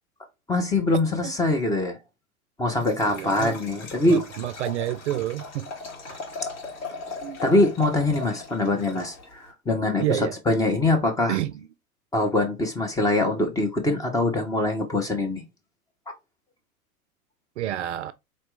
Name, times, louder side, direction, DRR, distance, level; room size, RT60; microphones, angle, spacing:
voice 1, 0.5-2.0 2.6-4.2 7.4-11.4 12.1-15.4, left 2 dB, 10° left, 0.5 m, -23 dB
Liquid, 2.7-9.5, left 4 dB, 50° left, 1.9 m, -39 dB
voice 2, 3.0-3.6 4.0-5.7 6.1-6.2 7.2-7.4 10.0-10.4 11.3-11.7 17.6-18.1, right 13 dB, 55° right, 0.5 m, -29 dB
4.0 x 2.9 x 3.1 m
figure-of-eight pair, 95°, 43 cm